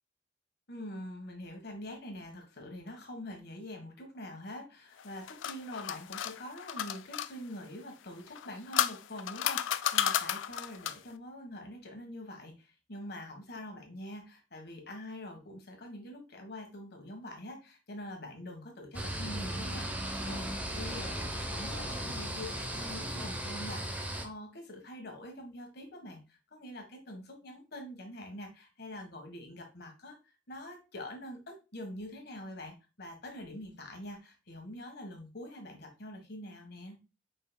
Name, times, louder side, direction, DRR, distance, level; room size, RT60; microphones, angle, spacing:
voice 1, 0.7-30.2 30.5-37.0, left 1 dB, 60° left, 3 dB, 1.4 m, -45 dB
sound 1, 5.0-7.3 8.3-11.1, left 10 dB, 80° left, 0.3 m, -33 dB
sound 2, 18.9-24.3, right 1 dB, 10° right, 0.8 m, -36 dB
5.1 x 4.5 x 2.3 m, 0.28 s
head